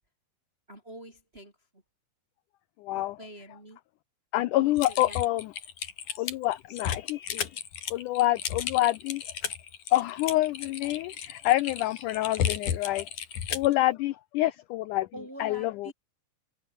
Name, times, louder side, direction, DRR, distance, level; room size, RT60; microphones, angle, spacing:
voice 1, 0.7-1.5 3.2-3.8 4.3-5.2 15.1-15.9, right 1 dB, 15° right, 5.6 m, -45 dB
voice 2, 2.8-3.2 4.3-5.5 6.2-7.6 7.9-9.2 9.9-13.1 13.5-15.1 15.4-15.9, left 16 dB, 85° left, 1.8 m, -27 dB
Typing, 4.8-13.7, left 8 dB, 60° left, 3.6 m, -34 dB
omnidirectional pair, 4.4 m